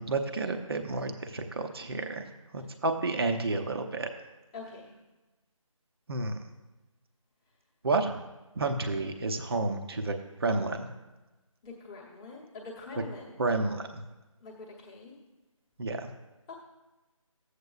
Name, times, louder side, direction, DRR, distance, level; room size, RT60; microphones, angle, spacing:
voice 1, 0.0-4.1 6.1-6.3 7.8-8.2 8.6-10.1 10.4-10.9 13.4-14.0 15.8-16.1, right 3 dB, 45° right, 5 dB, 0.7 m, -30 dB
voice 2, 4.5-4.9 11.6-13.4 14.4-15.2 16.5-16.6, left 3 dB, 10° left, -5 dB, 1.0 m, -45 dB
14.5 x 8.1 x 2.4 m, 1.1 s
figure-of-eight pair, 160°, 18 cm